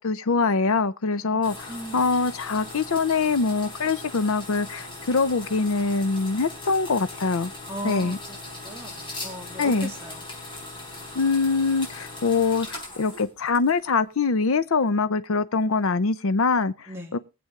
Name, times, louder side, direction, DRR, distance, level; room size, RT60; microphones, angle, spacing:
voice 1, 0.0-1.7 1.9-7.5 7.8-8.2 9.6-9.9 11.1-17.2, left 4 dB, 70° left, 0.6 m, -24 dB
sound 1, 1.4-14.0, left 2 dB, 20° left, 4.0 m, -39 dB
voice 2, 1.7-2.1 7.7-10.2 16.9-17.2, right 1 dB, 10° right, 2.4 m, -37 dB
20.5 x 7.8 x 3.6 m
head